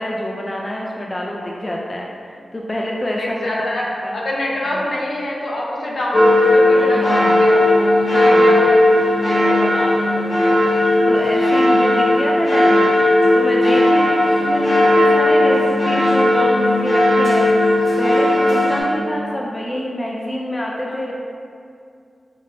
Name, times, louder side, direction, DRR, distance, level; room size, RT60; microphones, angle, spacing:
voice 1, 0.0-2.1 2.5-4.2 4.6-4.8 6.8-7.4 8.1-8.6 10.3-10.5 11.1-12.9 13.3-17.5 18.0-21.1, left 1 dB, 25° left, -2 dB, 0.3 m, -26 dB
voice 2, 3.2-3.8 4.1-7.7 8.1-10.6 18.6-18.7 20.8-20.9, left 1 dB, 65° left, -4 dB, 0.6 m, -25 dB
sound 1, 6.1-18.8, left 1 dB, 90° left, 1.4 m, -15 dB
5.2 x 2.0 x 2.6 m, 2.4 s
cardioid pair, 60°, 0 cm